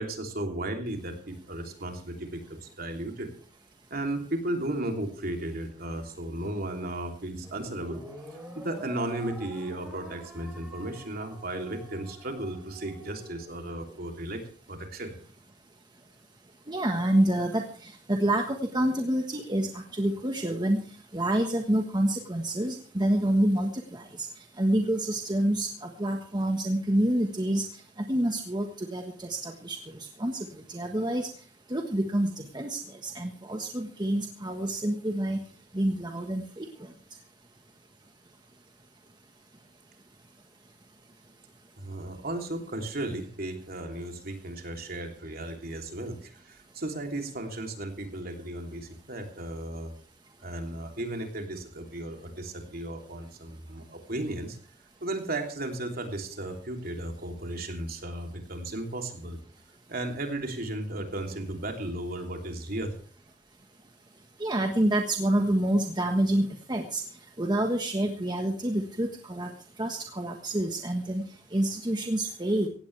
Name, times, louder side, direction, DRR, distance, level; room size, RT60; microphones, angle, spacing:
voice 1, 0.0-3.3 3.9-8.0 8.3-15.2 41.8-49.9 50.4-54.6 55.0-59.4 59.9-63.0, right 1 dB, 55° right, 4 dB, 3.2 m, -35 dB
sound 1, 7.4-14.0, right 1 dB, 5° right, 3.8 m, -47 dB
voice 2, 16.7-20.8 21.1-24.3 24.6-27.6 28.0-29.8 30.2-30.4 30.7-31.3 31.7-35.4 35.7-36.7 64.4-67.0 67.4-69.5 69.8-71.2 71.5-72.7, right 1 dB, 25° right, 3 dB, 1.4 m, -27 dB
17.0 x 16.5 x 3.4 m, 0.41 s
head